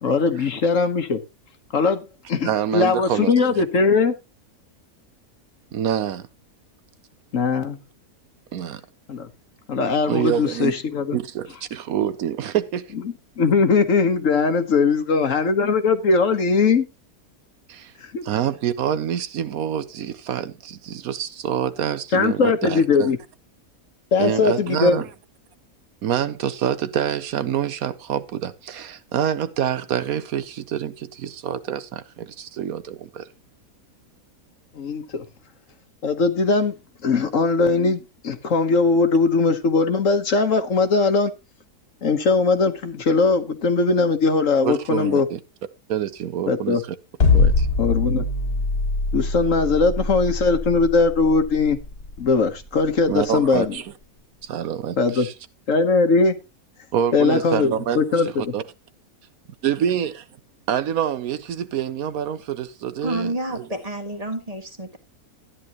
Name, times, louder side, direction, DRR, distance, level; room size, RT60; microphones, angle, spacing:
voice 1, 0.0-1.2 1.7-4.1 7.3-7.8 9.1-9.3 9.7-11.2 13.4-16.9 18.0-18.2 22.1-23.2 24.1-25.0 34.7-35.2 36.0-36.7 37.0-41.3 42.0-45.3 46.5-46.8 47.8-48.2 49.1-51.8 52.2-53.7 55.0-55.3 55.7-56.4 57.1-58.4, left 4 dB, 60° left, 1.4 m, -20 dB
voice 2, 2.4-3.6 5.7-6.3 8.5-8.8 10.1-10.7 11.1-12.9 17.7-17.9 18.2-23.1 24.2-25.1 26.0-33.3 44.6-45.4 45.9-47.0 47.3-47.7 53.1-53.9 54.4-55.3 56.9-58.6 59.6-60.3 60.7-63.6, right 9 dB, 70° right, 1.1 m, -26 dB
sound 1, 47.2-53.4, left 3 dB, 40° left, 1.6 m, -22 dB
voice 3, 63.0-65.0, right 1 dB, 25° right, 1.7 m, -29 dB
13.0 x 10.0 x 2.9 m
omnidirectional pair, 1.6 m